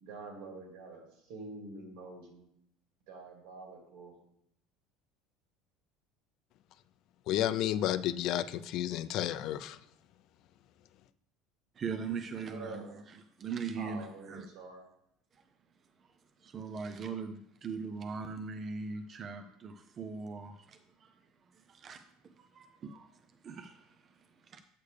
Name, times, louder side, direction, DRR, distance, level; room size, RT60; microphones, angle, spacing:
voice 1, 0.0-2.4 3.1-4.1 12.4-13.0 13.7-14.8, right 3 dB, 80° right, 1 dB, 2.2 m, -46 dB
voice 2, 7.3-9.8, left 12 dB, 55° left, 14 dB, 0.4 m, -31 dB
voice 3, 11.8-14.5 15.3-15.4 16.4-21.3 21.5-24.6, right 5 dB, 30° right, 7 dB, 0.5 m, -41 dB
8.2 x 6.6 x 3.3 m, 0.75 s
cardioid pair, 135°, 0 cm